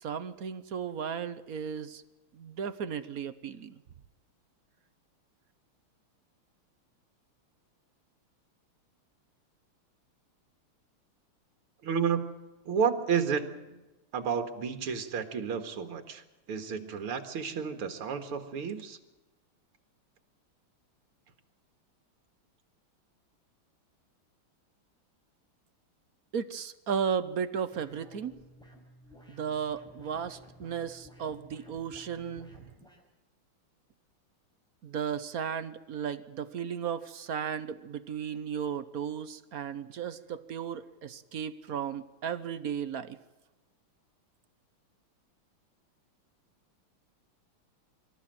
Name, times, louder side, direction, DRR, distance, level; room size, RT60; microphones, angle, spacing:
voice 1, 0.0-2.0 2.3-3.8 26.3-28.3 29.3-32.5 34.8-43.2, right 7 dB, 55° right, 13 dB, 1.1 m, -35 dB
voice 2, 11.8-12.3 12.7-13.8 14.1-19.0, right 6 dB, 80° right, 8 dB, 2.6 m, -31 dB
sound 1, 27.7-33.0, equal, ahead, 5.0 m, -54 dB
25.5 x 14.0 x 9.1 m, 1.1 s
omnidirectional pair, 2.4 m